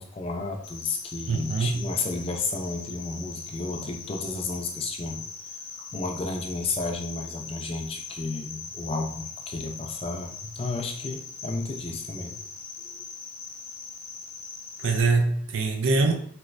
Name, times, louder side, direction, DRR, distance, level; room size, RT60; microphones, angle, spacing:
voice 1, 0.0-5.2 5.9-12.4 12.8-13.0, left 3 dB, 30° left, 4 dB, 0.4 m, -32 dB
Cricket, 0.6-15.0, left 5 dB, 85° left, 0.6 m, -41 dB
voice 2, 1.3-1.9 14.8-16.1, right 3 dB, 75° right, 3 dB, 0.5 m, -23 dB
3.1 x 3.0 x 2.5 m, 0.63 s
head